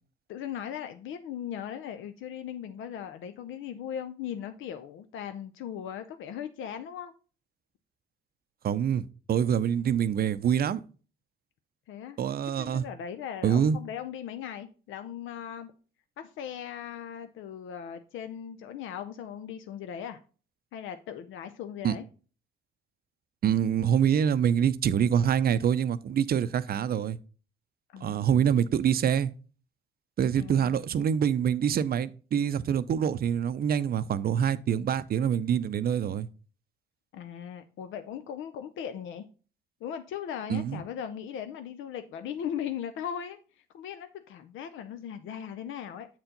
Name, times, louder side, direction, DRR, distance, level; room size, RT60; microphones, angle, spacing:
voice 1, 0.3-7.1 11.9-12.2 12.6-15.7 16.2-20.2 20.7-22.0 27.9-28.5 30.4-30.8 37.1-39.3 39.8-46.1, left 9 dB, 80° left, 0.5 m, -38 dB
voice 2, 8.6-10.8 12.2-12.8 13.4-13.8 21.8-22.0 23.4-27.2 28.0-29.3 30.2-36.3 40.5-40.8, right 8 dB, 50° right, 0.5 m, -25 dB
7.8 x 4.4 x 3.8 m
cardioid pair, 90°, 20 cm